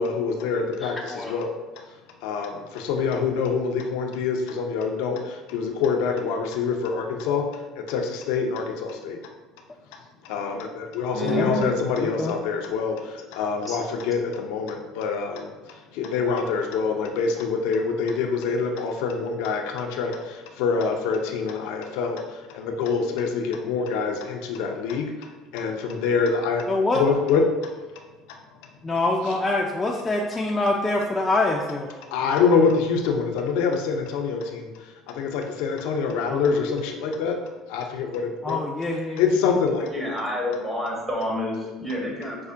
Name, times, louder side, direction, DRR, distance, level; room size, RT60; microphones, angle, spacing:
voice 1, 0.0-1.5 2.2-7.4 7.8-9.2 10.2-15.5 15.9-26.6 26.9-27.4 32.1-34.7 35.1-37.4 37.7-38.6 39.2-40.2, left 5 dB, 80° left, 3 dB, 0.5 m, -25 dB
voice 2, 0.8-1.4 11.2-11.7 12.0-12.3 26.7-27.0 28.8-31.9 36.3-36.5 38.4-39.3, left 2 dB, 20° left, -1 dB, 0.4 m, -25 dB
voice 3, 11.1-11.5 13.7-13.8 39.9-42.4, equal, 20° right, -3 dB, 1.1 m, -29 dB
5.4 x 2.1 x 2.5 m, 1.3 s
supercardioid pair, 80°, 0 cm